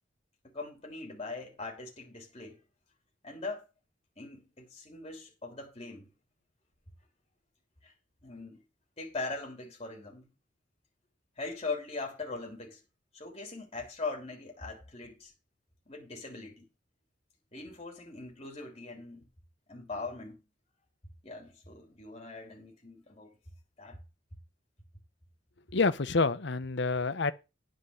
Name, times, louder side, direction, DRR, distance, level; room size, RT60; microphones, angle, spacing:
voice 1, 0.4-2.6 3.2-3.6 4.2-6.1 7.8-7.9 8.2-8.6 9.0-10.3 11.4-12.8 13.1-15.3 15.9-16.7 17.5-19.3 19.7-20.4 21.2-23.3 23.8-24.0, left 3 dB, 30° left, 3.3 m, -41 dB
voice 2, 25.7-27.3, left 4 dB, 65° left, 0.8 m, -27 dB
10.0 x 5.1 x 7.7 m
head